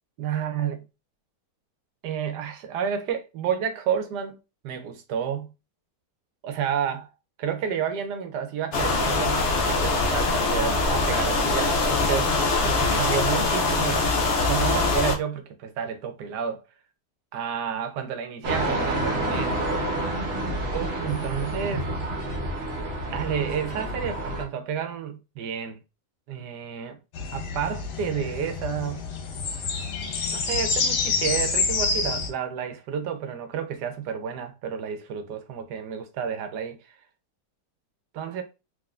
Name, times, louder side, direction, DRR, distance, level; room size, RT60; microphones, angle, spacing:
voice 1, 0.2-0.8 2.0-4.4 4.6-5.5 6.4-7.1 7.4-12.4 12.6-14.1 14.4-16.6 17.3-19.5 20.7-21.9 23.1-25.8 26.3-27.0 27.3-29.0 30.3-36.8 38.1-38.4, right 8 dB, 80° right, 1.2 m, -30 dB
sound 1, 8.7-15.2, left 3 dB, 65° left, 0.7 m, -23 dB
sound 2, 18.4-24.4, right 1 dB, 50° right, 0.9 m, -28 dB
sound 3, 27.1-32.3, left 4 dB, 80° left, 1.3 m, -27 dB
3.6 x 2.6 x 2.3 m
omnidirectional pair, 1.8 m